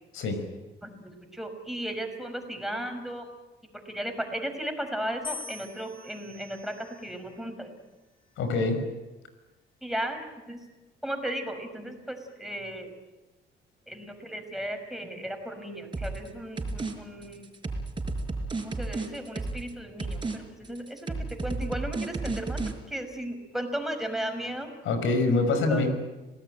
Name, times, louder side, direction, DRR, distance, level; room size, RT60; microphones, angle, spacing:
voice 1, 0.8-3.3 3.9-7.7 9.8-10.6 11.0-12.9 13.9-17.5 18.6-24.8 25.7-25.9, right 1 dB, ahead, 5 dB, 5.7 m, -35 dB
sound 1, 5.2-7.5 8.3-8.8, left 5 dB, 25° left, 8.0 m, -44 dB
voice 2, 8.4-8.8 24.8-25.9, left 3 dB, 85° left, 8 dB, 5.6 m, -25 dB
sound 2, 15.9-16.3 16.6-16.9 17.2-19.7 20.0-20.4 20.6-22.7, right 3 dB, 25° right, 5.0 m, -32 dB
27.5 x 18.5 x 9.2 m, 1.1 s
cardioid pair, 90°, 20 cm